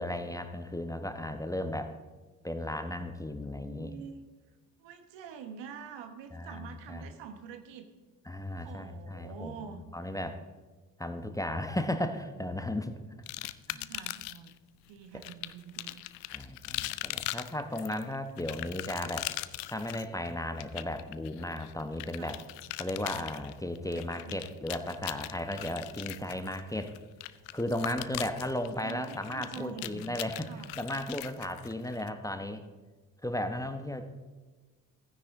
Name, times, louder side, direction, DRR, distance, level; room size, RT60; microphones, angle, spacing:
voice 1, 0.0-1.9 2.4-3.9 6.3-7.0 8.2-9.6 9.9-10.4 11.0-13.0 13.4-13.8 16.3-19.3 19.7-22.4 22.8-26.9 27.5-32.6 33.2-34.0, left 1 dB, 5° left, 7 dB, 1.0 m, -35 dB
voice 2, 3.5-4.2 4.8-7.9 8.5-9.8 13.7-14.5 14.8-16.0 22.2-22.4 23.9-24.4 28.8-30.2 30.5-30.7, right 7 dB, 65° right, 8 dB, 1.3 m, -46 dB
sound 1, 13.3-14.5 15.2-32.1, left 18 dB, 75° left, 0.5 m, -40 dB
14.5 x 9.7 x 3.6 m, 1.3 s
hypercardioid pair, 50°, 46 cm